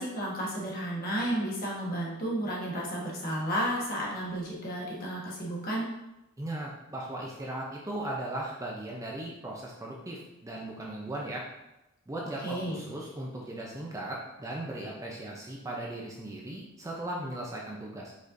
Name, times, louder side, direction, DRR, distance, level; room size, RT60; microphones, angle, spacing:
voice 1, 0.0-5.9 12.4-12.8, right 1 dB, 40° left, -4 dB, 1.2 m, -32 dB
voice 2, 6.4-11.5 12.1-18.1, right 1 dB, 15° right, -2 dB, 0.5 m, -37 dB
5.1 x 4.1 x 2.5 m, 0.94 s
head